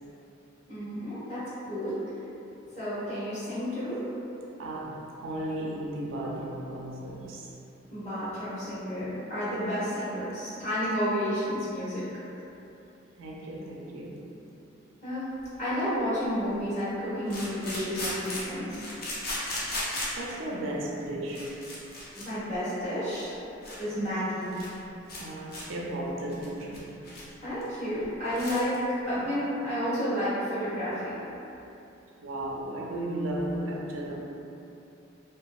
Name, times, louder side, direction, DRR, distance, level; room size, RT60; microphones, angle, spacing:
voice 1, 0.7-1.4 1.7-2.0 2.8-4.1 7.9-12.0 15.0-15.3 15.6-18.8 22.1-23.4 23.8-24.7 27.4-28.8 29.1-31.2, equal, 40° left, -13 dB, 1.2 m, -31 dB
voice 2, 4.3-7.5 8.6-8.8 10.2-10.3 11.6-11.8 13.2-14.2 15.6-15.7 16.2-16.5 20.2-21.6 23.4-23.5 24.5-24.7 25.2-27.0 27.9-28.1 28.7-29.2 29.5-30.0 30.2-30.3 30.6-30.8 31.3-31.4 32.2-34.2, right 1 dB, 85° right, -2 dB, 0.4 m, -36 dB
sound 1, 15.4-15.5 17.3-20.3 21.0-21.1 21.3-22.3 22.5-22.7 23.2-23.3 23.6-23.8 24.1-24.2 24.4-24.8 25.1-25.2 25.5-25.6 26.1-27.3 27.6-27.7 28.0-28.1 28.3-28.8, left 1 dB, 55° left, 0.6 m, -36 dB
2.7 x 2.3 x 2.3 m, 2.8 s
head